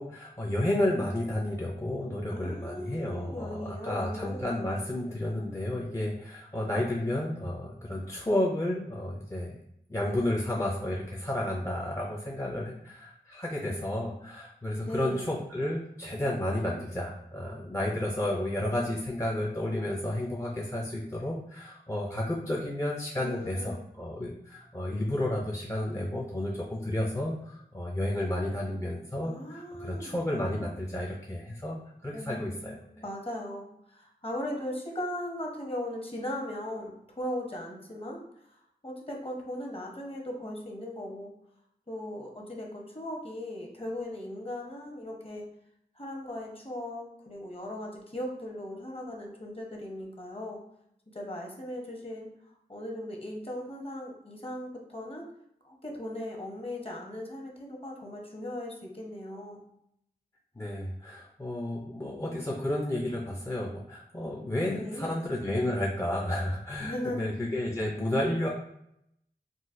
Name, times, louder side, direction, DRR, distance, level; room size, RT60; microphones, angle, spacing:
voice 1, 0.0-9.6 9.9-31.8 32.0-32.8 60.6-68.5, left 1 dB, 20° left, -2 dB, 0.4 m, -31 dB
voice 2, 2.3-4.4 14.7-15.3 23.1-23.8 29.2-30.1 32.1-38.2 38.8-41.3 41.9-45.4 46.0-50.6 51.1-55.3 55.6-59.6 64.7-65.2 66.8-67.3, left 1 dB, 35° left, 0 dB, 0.8 m, -38 dB
3.8 x 2.2 x 2.5 m, 0.76 s
wide cardioid pair, 40°, 17 cm